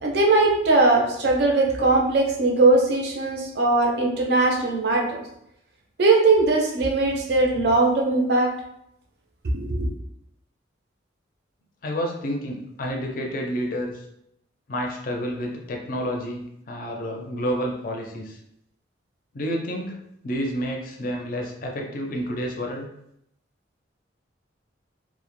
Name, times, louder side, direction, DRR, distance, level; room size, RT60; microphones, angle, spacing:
voice 1, 0.0-5.2 6.0-8.5 9.5-9.9, right 2 dB, 55° right, -1 dB, 0.5 m, -20 dB
voice 2, 11.8-13.9 14.7-18.4 19.3-20.0 20.2-22.9, equal, 45° left, 1 dB, 0.4 m, -29 dB
2.1 x 2.0 x 3.0 m, 0.78 s
head